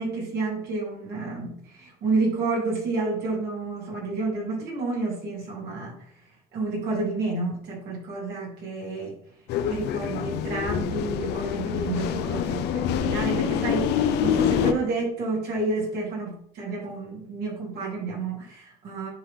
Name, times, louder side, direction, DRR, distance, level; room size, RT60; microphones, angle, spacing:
voice 1, 0.0-6.0 6.5-9.1 9.6-19.1, right 3 dB, 70° right, -3 dB, 3.1 m, -30 dB
sound 1, 9.5-14.7, left 9 dB, 80° left, 0.6 m, -26 dB
10.0 x 3.4 x 3.7 m, 0.65 s
cardioid pair, 110°, 17 cm